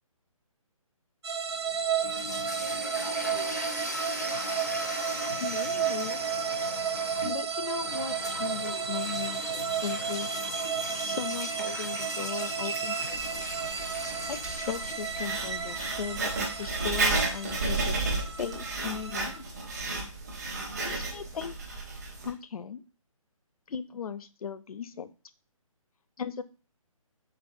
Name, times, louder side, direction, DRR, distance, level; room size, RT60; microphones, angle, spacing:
sound 1, 1.2-19.4, right 6 dB, 50° right, 0.4 m, -33 dB
sound 2, 1.6-17.6, left 3 dB, 30° left, 0.4 m, -40 dB
voice 1, 5.4-6.2 7.3-10.3 11.0-13.3 14.3-19.7 20.8-21.6 22.2-22.8 23.7-25.1 26.2-26.4, left 7 dB, 85° left, 13 dB, 0.5 m, -37 dB
Writing, 13.1-22.3, right 3 dB, 30° right, 0.9 m, -33 dB
4.5 x 3.9 x 2.6 m, 0.35 s
hypercardioid pair, 175°, 18 cm